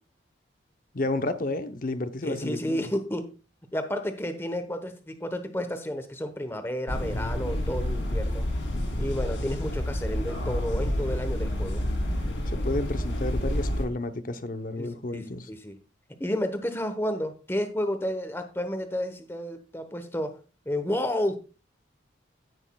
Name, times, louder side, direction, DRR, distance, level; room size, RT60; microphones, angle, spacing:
voice 1, 0.9-2.9 12.5-15.5, left 2 dB, 45° left, 0.7 m, -31 dB
voice 2, 2.2-3.3 3.7-8.5 9.0-11.8 14.8-15.7 16.2-20.4 20.7-21.4, left 1 dB, 10° left, 1.0 m, -31 dB
sound 1, 6.9-13.8, left 1 dB, 85° left, 3.2 m, -29 dB
16.5 x 6.3 x 2.3 m
head